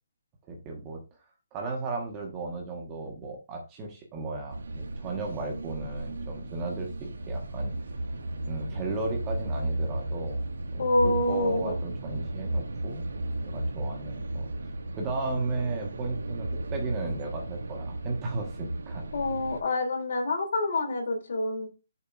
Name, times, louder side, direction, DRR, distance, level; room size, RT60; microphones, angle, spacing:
voice 1, 0.5-1.0 1.5-7.7 8.5-13.1 13.4-14.5 14.9-19.1, right 3 dB, 15° right, 1 dB, 1.3 m, -35 dB
sound 1, 4.5-19.6, right 1 dB, 80° right, 1.3 m, -34 dB
voice 2, 10.8-11.8 19.1-21.7, left 2 dB, 55° left, 3 dB, 2.9 m, -27 dB
7.0 x 4.2 x 5.2 m, 0.28 s
hypercardioid pair, 170°, 0 cm